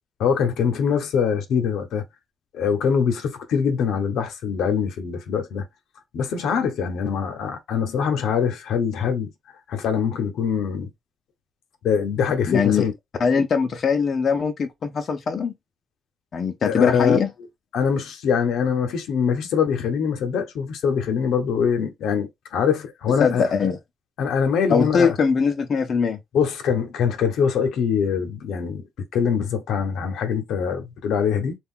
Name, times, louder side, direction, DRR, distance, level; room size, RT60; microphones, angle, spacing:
voice 1, 0.2-2.0 2.5-5.7 6.1-9.3 9.7-10.9 11.8-12.9 16.7-17.2 17.7-23.5 24.2-25.2 26.3-28.9 29.1-31.6, left 7 dB, 80° left, 0.7 m, -23 dB
voice 2, 12.5-12.8 13.2-15.5 16.3-17.3 23.2-23.8 24.7-26.2, left 5 dB, 50° left, 0.5 m, -21 dB
2.4 x 2.2 x 3.6 m
cardioid pair, 90°, 0 cm